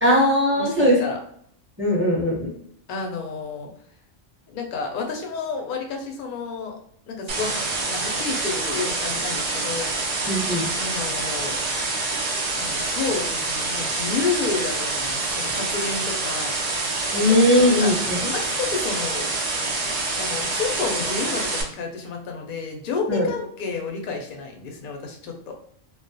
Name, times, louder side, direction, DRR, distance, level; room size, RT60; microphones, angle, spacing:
voice 1, 0.0-1.0 1.8-2.5 10.3-10.7 17.1-18.2 23.1-23.3, left 1 dB, 15° right, -5 dB, 0.6 m, -19 dB
voice 2, 0.6-1.2 1.9-2.2 2.9-3.7 4.5-6.7 7.1-9.9 10.7-11.6 12.5-16.6 17.1-17.4 17.8-17.9 18.2-19.3 20.1-25.5, left 4 dB, 60° left, 2 dB, 0.5 m, -30 dB
sound 1, 7.3-21.6, right 3 dB, 90° right, 0.3 m, -26 dB
2.3 x 2.1 x 2.6 m, 0.68 s
omnidirectional pair, 1.3 m